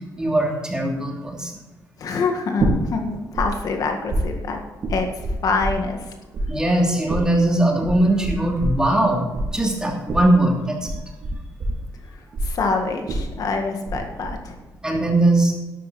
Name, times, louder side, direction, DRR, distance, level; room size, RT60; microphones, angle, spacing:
voice 1, 0.2-1.5 6.5-10.9 14.8-15.5, right 1 dB, 10° right, -1 dB, 3.0 m, -20 dB
voice 2, 2.0-4.6 4.9-5.1 5.4-6.0 12.4-14.6, left 4 dB, 60° left, 4 dB, 1.8 m, -25 dB
sound 1, 2.6-3.5 3.7-6.1 6.3-14.0 14.2-14.8, right 2 dB, 55° right, 4.2 m, -26 dB
13.0 x 11.5 x 4.2 m, 1.1 s
cardioid pair, 145°, 7 cm